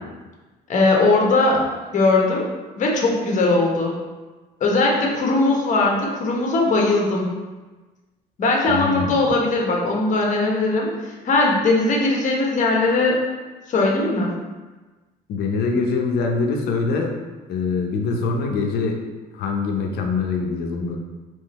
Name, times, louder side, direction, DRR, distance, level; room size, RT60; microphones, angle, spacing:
voice 1, 0.7-1.6 1.9-2.5 2.8-3.9 4.6-7.3 8.4-10.9 11.2-13.1 13.7-14.3, left 2 dB, 45° left, -1 dB, 1.1 m, -19 dB
voice 2, 8.7-9.3 15.3-17.1 17.5-19.0 19.3-21.0, left 4 dB, 70° left, 2 dB, 0.7 m, -24 dB
3.7 x 3.1 x 4.2 m, 1.2 s
cardioid pair, 110°, 17 cm